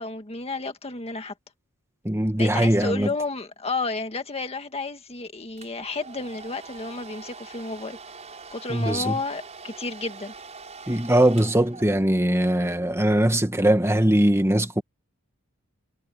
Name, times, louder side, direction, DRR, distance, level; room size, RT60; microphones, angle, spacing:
voice 1, 0.0-1.3 2.4-8.0 8.5-10.3, left 3 dB, 30° left, 1.9 m, -31 dB
voice 2, 2.1-3.1 8.7-9.2 10.9-14.8, right 1 dB, 10° right, 2.0 m, -21 dB
Domestic sounds home sounds, 5.6-12.3, right 4 dB, 30° right, 5.1 m, -43 dB
head